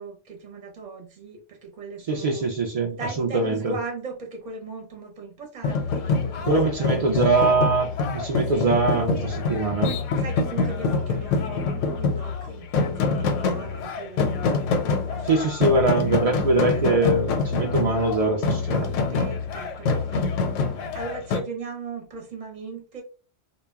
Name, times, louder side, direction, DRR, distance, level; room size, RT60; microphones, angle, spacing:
voice 1, 0.0-2.4 2.9-7.6 8.5-9.6 10.2-15.6 19.1-23.0, right 4 dB, 45° right, 2 dB, 0.7 m, -38 dB
voice 2, 2.1-3.7 6.5-9.1 9.5-9.9 15.2-18.9, right 3 dB, 80° right, 1 dB, 0.3 m, -22 dB
sound 1, 5.6-21.4, left 4 dB, 90° left, 0.9 m, -25 dB
2.2 x 2.1 x 3.3 m, 0.34 s
omnidirectional pair, 1.2 m